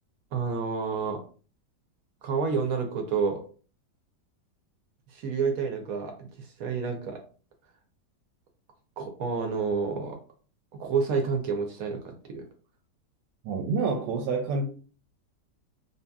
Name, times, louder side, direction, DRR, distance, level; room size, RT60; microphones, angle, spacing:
voice 1, 0.3-1.2 2.2-3.4 5.1-7.2 9.0-10.2 10.7-12.4, right 5 dB, 70° right, 0.9 m, -29 dB
voice 2, 13.4-14.7, right 4 dB, 90° right, 1.2 m, -28 dB
2.7 x 2.7 x 2.2 m
omnidirectional pair, 1.8 m